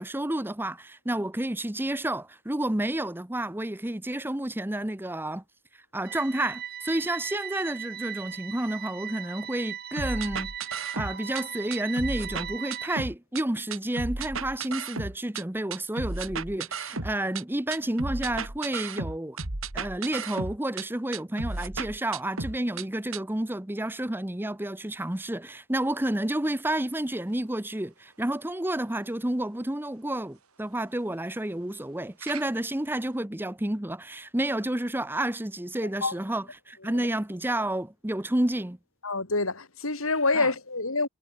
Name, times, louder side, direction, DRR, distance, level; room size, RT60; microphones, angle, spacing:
voice 1, 0.0-5.4 5.9-19.4 19.7-38.8 40.4-40.5, right 1 dB, 10° right, 0.8 m, -30 dB
sound 1, 6.0-13.0, right 9 dB, 45° right, 4.8 m, -38 dB
sound 2, 10.0-11.4 11.7-13.4 13.7-15.4 15.7-17.4 17.7-20.8 21.1-22.8 23.1-23.2, right 3 dB, 65° right, 2.6 m, -34 dB
sound 3, 26.9-33.2, right 9 dB, 85° right, 5.9 m, -52 dB
voice 2, 39.0-41.1, left 3 dB, 70° left, 3.7 m, -27 dB
head